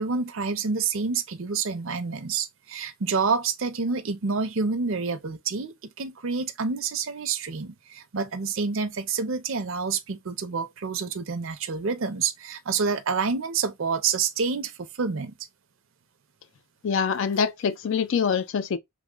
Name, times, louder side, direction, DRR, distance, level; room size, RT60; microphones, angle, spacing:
voice 1, 0.0-14.7 15.0-15.3, right 5 dB, 60° right, 0.5 m, -28 dB
voice 2, 16.8-18.8, left 6 dB, 55° left, 0.3 m, -25 dB
3.0 x 2.1 x 3.7 m
head